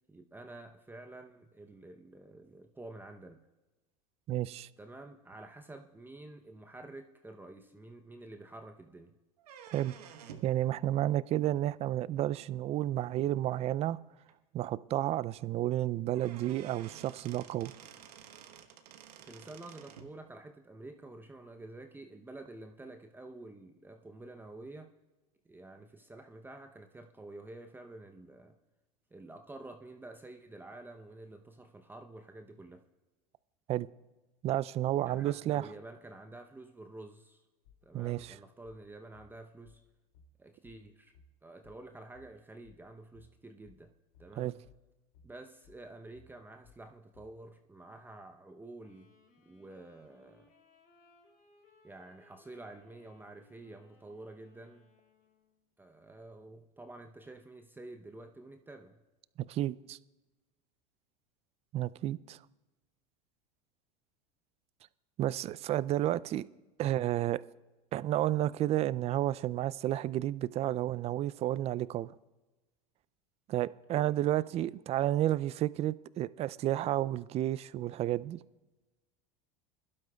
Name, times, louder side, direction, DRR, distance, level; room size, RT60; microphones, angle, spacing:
voice 1, 0.1-3.4 4.8-9.1 19.2-24.9 25.4-28.5 29.1-32.8 35.0-37.4 37.8-39.8 40.4-41.1 41.4-43.9 44.2-44.6 45.2-49.1 49.4-50.5 51.8-54.9 55.8-59.0 73.9-74.1, right 2 dB, 10° right, 5 dB, 0.7 m, -49 dB
voice 2, 4.3-4.7 9.7-10.0 10.4-14.0 14.5-17.7 33.7-33.9 34.4-35.7 37.9-38.4 44.4-44.5 59.4-60.0 61.7-62.4 65.2-66.5 66.8-67.4 67.9-72.2 73.5-78.4, right 13 dB, 35° right, 19 dB, 0.3 m, -31 dB
sound 1, 9.4-10.6 12.3-12.4 13.4-13.5 13.9-14.0 14.3-14.4 15.8-15.9 16.1-20.1, right 8 dB, 85° right, 1.0 m, -52 dB
sound 2, 37.6-47.4, left 4 dB, 75° left, 2.6 m, -63 dB
Wind instrument woodwind instrument, 48.8-55.6, left 4 dB, 45° left, 3.5 m, -66 dB
22.0 x 12.0 x 2.3 m, 1.1 s
hypercardioid pair, 100°, 20 cm